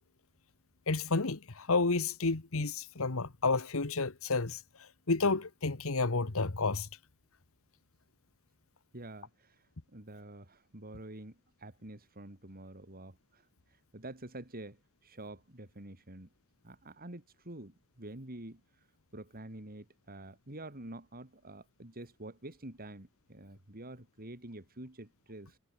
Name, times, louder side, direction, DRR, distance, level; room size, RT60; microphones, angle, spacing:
voice 1, 0.9-6.9, left 3 dB, 70° left, 1.4 m, -31 dB
voice 2, 8.9-13.5 13.9-16.3 16.6-18.6 19.1-25.6, right 1 dB, 45° right, 3.5 m, -48 dB
head